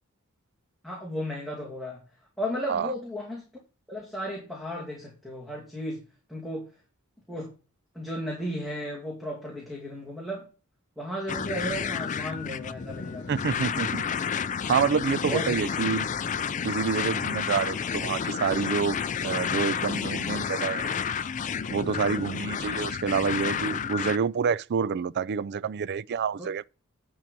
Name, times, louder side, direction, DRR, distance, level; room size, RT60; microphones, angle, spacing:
voice 1, 0.8-2.0 2.4-3.5 3.9-6.0 6.3-6.7 7.3-7.5 7.9-10.5 11.0-13.4 15.3-15.6 26.4-26.5, equal, ahead, 2.3 m, -34 dB
sound 1, 11.3-24.2, left 7 dB, 35° left, 0.4 m, -30 dB
voice 2, 13.3-14.0 14.7-16.1 16.6-20.9 21.7-26.7, right 6 dB, 50° right, 0.4 m, -28 dB
10.5 x 4.6 x 5.3 m
head